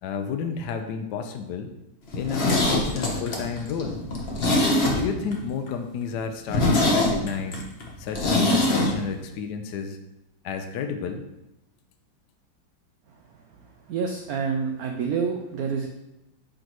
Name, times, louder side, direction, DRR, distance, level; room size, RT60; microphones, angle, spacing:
voice 1, 0.0-1.7 2.1-4.0 5.0-7.6 8.0-10.0 10.4-11.2, left 6 dB, 70° left, 6 dB, 1.0 m, -31 dB
Zipper (clothing), 2.1-5.4 5.7-5.8 6.1-6.2 6.5-8.9 9.2-9.3, left 2 dB, 40° left, 0.9 m, -23 dB
voice 2, 13.9-15.9, right 6 dB, 85° right, 3 dB, 0.8 m, -27 dB
6.2 x 5.1 x 3.0 m, 0.90 s
omnidirectional pair, 2.2 m